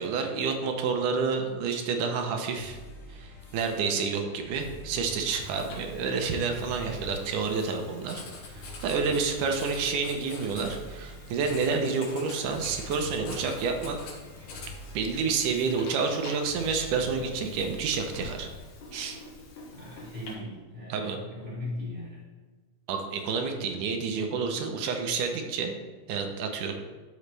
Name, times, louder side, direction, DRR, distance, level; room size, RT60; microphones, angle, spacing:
voice 1, 0.0-2.8 3.1-8.2 8.5-14.0 14.9-18.5 18.9-19.2 20.9-21.2 22.9-25.7 26.1-26.7, right 5 dB, 75° right, 4 dB, 2.3 m, -29 dB
sound 1, 2.6-18.6, left 1 dB, 40° left, 1.5 m, -46 dB
Writing, 5.3-20.3, left 3 dB, 70° left, 2.8 m, -46 dB
voice 2, 19.7-22.3, left 1 dB, 25° right, -5 dB, 2.8 m, -39 dB
12.0 x 6.3 x 3.3 m, 1.4 s
omnidirectional pair, 3.8 m